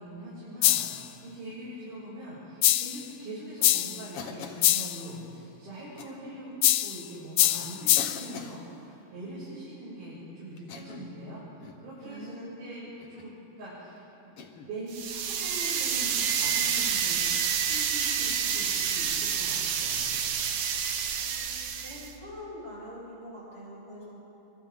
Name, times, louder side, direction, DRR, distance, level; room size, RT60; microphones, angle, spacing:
voice 1, 0.0-12.3 12.6-13.3 13.6-14.3 14.6-20.4, right 1 dB, 90° right, -10 dB, 8.5 m, -42 dB
sound 1, 0.6-1.1 2.6-3.0 3.6-4.0 4.6-5.0 6.6-7.0 7.4-8.3, left 14 dB, 80° left, 2.3 m, -24 dB
Cough, 4.1-4.7 6.0-6.2 7.1-7.2 8.0-8.6 10.6-11.2 11.6-11.9 13.0-13.3 14.4-14.7 16.2-16.5 18.7-18.9 20.6-20.7, left 6 dB, 55° left, 1.8 m, -43 dB
voice 2, 12.0-12.5 21.2-24.2, equal, 20° right, -8 dB, 6.8 m, -44 dB
sound 2, 14.9-22.1, right 7 dB, 60° right, 1.8 m, -28 dB
30.0 x 25.5 x 3.8 m, 2.8 s
omnidirectional pair, 4.0 m